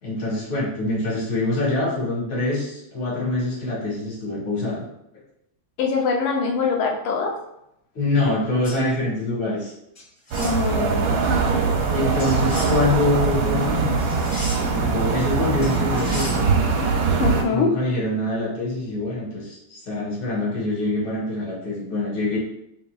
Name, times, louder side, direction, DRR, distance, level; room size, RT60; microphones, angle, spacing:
voice 1, 0.0-4.8 7.9-9.7 11.9-14.2 14.7-16.5 17.5-22.4, left 2 dB, 75° left, -6 dB, 2.4 m, -25 dB
voice 2, 5.8-7.4 10.4-11.2 17.2-17.7, left 5 dB, 90° left, 1 dB, 1.6 m, -23 dB
sound 1, 8.6-8.8 10.0-10.6 12.2-12.8 14.0-14.8 15.6-16.4, left 1 dB, 50° left, 0.5 m, -35 dB
sound 2, 10.3-17.4, right 4 dB, 75° right, 1.4 m, -22 dB
5.5 x 2.9 x 2.3 m, 0.81 s
omnidirectional pair, 2.3 m